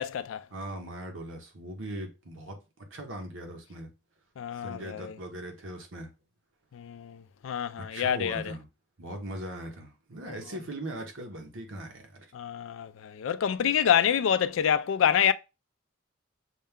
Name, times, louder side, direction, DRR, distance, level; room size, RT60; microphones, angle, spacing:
voice 1, 0.0-0.4 4.4-5.2 6.7-8.5 10.3-10.4 12.3-15.3, left 8 dB, 85° left, 0.3 m, -27 dB
voice 2, 0.5-3.9 4.6-6.1 7.9-8.7 9.0-12.3, right 1 dB, 85° right, 1.2 m, -40 dB
6.4 x 2.2 x 3.5 m
head